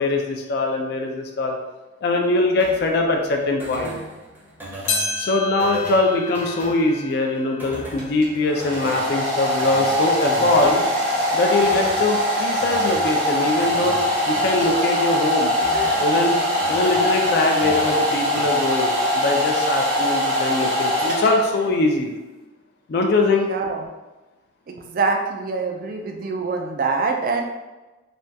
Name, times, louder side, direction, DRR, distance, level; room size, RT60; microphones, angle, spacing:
voice 1, 0.0-1.5 2.0-3.9 5.2-10.8 11.3-15.5 16.0-16.4 16.7-22.1 22.9-23.5, left 2 dB, 55° left, 2 dB, 0.4 m, -22 dB
sound 1, 2.6-18.6, equal, 10° right, 0.6 m, -38 dB
sound 2, 4.9-9.5 10.0-10.1 10.9-11.0 12.0-12.1, left 3 dB, 85° left, 0.7 m, -32 dB
Domestic sounds home sounds, 8.0-21.7, equal, 80° right, 1.1 m, -22 dB
voice 2, 23.4-23.8 24.7-27.4, right 4 dB, 45° right, 3 dB, 0.3 m, -25 dB
3.3 x 2.2 x 2.6 m, 1.1 s
head